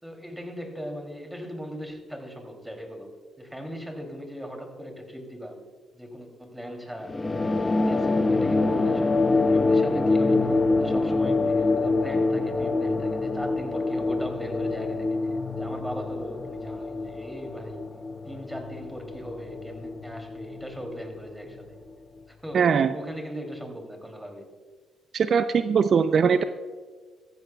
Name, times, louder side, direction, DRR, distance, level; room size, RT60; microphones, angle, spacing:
voice 1, 0.0-3.1 3.4-5.6 5.9-7.3 7.5-17.8 18.3-21.8 22.3-24.5, equal, 5° right, 3 dB, 2.9 m, -39 dB
sound 1, 7.0-21.9, left 3 dB, 25° left, 0.7 m, -26 dB
voice 2, 22.5-22.9 25.1-26.4, right 6 dB, 55° right, 11 dB, 0.4 m, -21 dB
14.5 x 14.0 x 2.3 m, 1.5 s
supercardioid pair, 60°, 0 cm